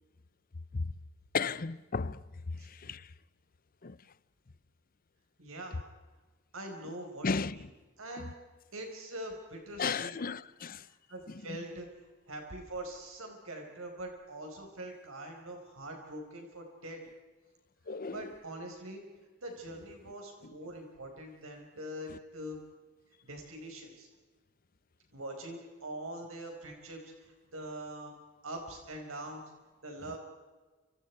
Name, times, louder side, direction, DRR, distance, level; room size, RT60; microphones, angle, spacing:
voice 1, 1.3-2.2 2.6-3.1 3.8-4.0 7.2-7.6 8.2-8.3 9.8-10.9 17.9-18.3 22.1-22.2 30.1-30.2, left 4 dB, 45° left, 0.7 m, -34 dB
voice 2, 5.4-5.8 6.5-7.7 8.0-8.3 8.7-10.2 10.8-11.9 12.3-17.0 18.1-19.0 19.4-22.6 23.2-24.1 25.1-28.2 28.4-29.4 29.8-30.2, right 1 dB, 70° right, 5.0 m, -43 dB
30.0 x 28.0 x 4.7 m
head